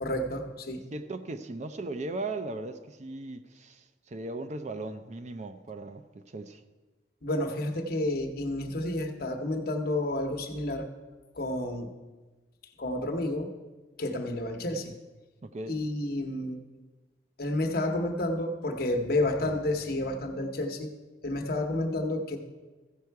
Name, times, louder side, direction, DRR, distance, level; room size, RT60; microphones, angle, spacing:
voice 1, 0.0-0.8 7.2-10.9 11.3-11.9 12.8-13.5 14.0-14.9 15.7-16.6 17.4-20.9 21.2-22.4, left 1 dB, 60° left, 1.0 m, -30 dB
voice 2, 0.9-6.6 15.4-15.8, right 2 dB, 40° right, 0.5 m, -38 dB
14.5 x 5.5 x 4.6 m
head